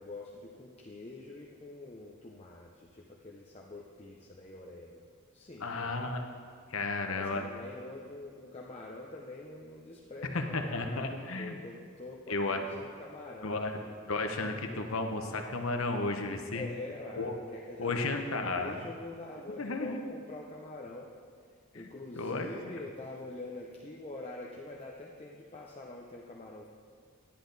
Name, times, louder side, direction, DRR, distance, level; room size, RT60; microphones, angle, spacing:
voice 1, 0.0-5.0 5.3-6.1 7.0-13.9 16.5-21.1 21.7-26.7, left 2 dB, 30° left, -2 dB, 0.6 m, -45 dB
voice 2, 5.6-6.2 6.7-7.4 10.3-11.6 12.3-12.7 13.4-13.8 14.1-16.7 17.2-17.4 17.8-18.9 19.6-20.0 21.7-21.9 22.2-22.5, left 3 dB, 85° left, 4 dB, 1.0 m, -33 dB
10.5 x 10.0 x 4.0 m, 2.1 s
head